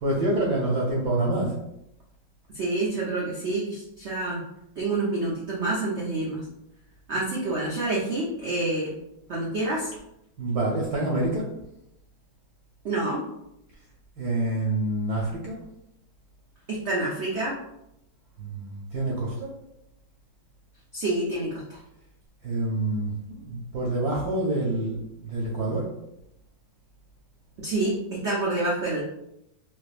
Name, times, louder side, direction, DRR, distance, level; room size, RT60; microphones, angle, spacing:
voice 1, 0.0-1.5 10.4-11.5 14.2-15.6 18.4-19.5 22.4-23.1 23.4-25.9, right 2 dB, 65° right, -3 dB, 1.0 m, -27 dB
voice 2, 2.5-4.4 4.8-6.4 7.1-8.9 9.3-9.9 12.8-13.2 16.7-17.6 20.9-21.8 27.6-29.0, right 2 dB, 85° right, -5 dB, 0.6 m, -27 dB
4.0 x 2.6 x 2.4 m, 0.83 s
omnidirectional pair, 2.1 m